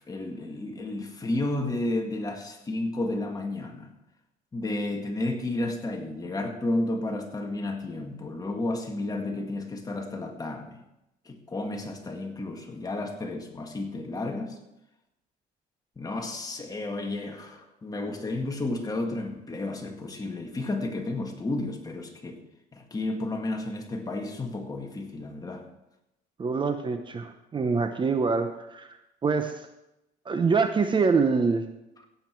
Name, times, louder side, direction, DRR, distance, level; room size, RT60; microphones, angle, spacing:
voice 1, 0.0-3.9 4.5-10.8 11.3-14.6 16.0-22.4 22.7-25.6, left 2 dB, 20° left, 2 dB, 2.0 m, -32 dB
voice 2, 26.4-28.9 29.2-29.7 30.3-31.7, right 4 dB, 30° right, 8 dB, 0.8 m, -25 dB
16.5 x 8.1 x 4.6 m, 0.90 s
cardioid pair, 110°, 17 cm